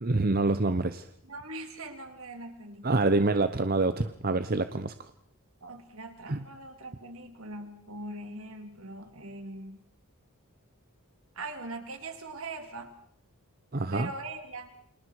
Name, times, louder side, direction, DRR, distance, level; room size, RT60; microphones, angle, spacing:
voice 1, 0.0-1.1 2.8-5.1 6.3-6.4 13.7-14.1, right 2 dB, 40° right, 11 dB, 0.9 m, -26 dB
voice 2, 1.3-2.9 5.6-9.9 11.4-12.9 13.9-14.7, right 2 dB, 65° right, 5 dB, 3.6 m, -41 dB
29.5 x 26.0 x 4.8 m, 0.64 s
head